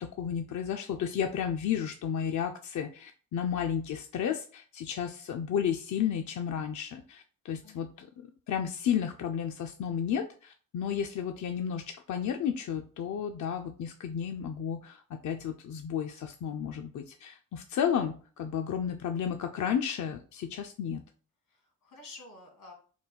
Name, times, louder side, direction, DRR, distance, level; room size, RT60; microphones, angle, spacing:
voice 1, 0.0-21.0, left 8 dB, 60° left, 5 dB, 0.4 m, -32 dB
voice 2, 7.6-8.0 21.5-22.7, left 2 dB, 80° left, 1 dB, 1.8 m, -51 dB
3.9 x 2.2 x 4.0 m, 0.41 s
cardioid pair, 70°, 34 cm